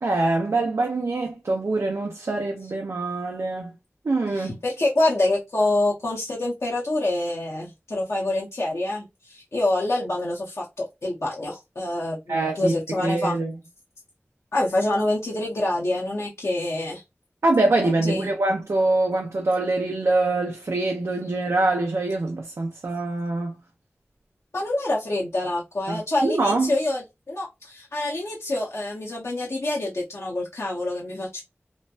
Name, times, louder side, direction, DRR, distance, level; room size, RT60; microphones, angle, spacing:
voice 1, 0.0-3.7 4.0-4.6 12.3-12.8 13.0-13.5 17.4-23.5 25.9-26.7, right 2 dB, 80° right, 0.5 m, -24 dB
voice 2, 4.3-13.4 14.5-17.0 17.8-18.3 24.5-31.4, left 2 dB, 75° left, 0.8 m, -26 dB
3.1 x 2.1 x 2.4 m
wide cardioid pair, 55°, 5 cm